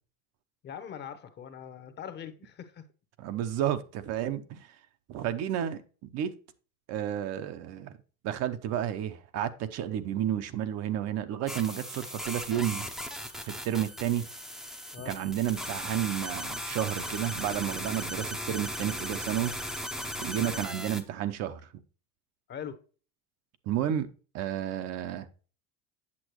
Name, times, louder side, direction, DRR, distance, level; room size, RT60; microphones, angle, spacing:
voice 1, 0.6-2.8 14.9-15.2 20.4-20.7 22.5-22.8, left 8 dB, 30° left, 0.9 m, -42 dB
voice 2, 3.2-4.7 5.1-5.8 6.1-6.3 6.9-7.9 8.2-12.9 13.5-14.3 15.1-19.5 20.2-21.7 23.7-24.1 24.3-25.3, right 11 dB, 45° right, 0.8 m, -31 dB
sound 1, 11.5-21.0, equal, ahead, 0.7 m, -37 dB
8.5 x 7.3 x 3.0 m
cardioid pair, 160°, 36 cm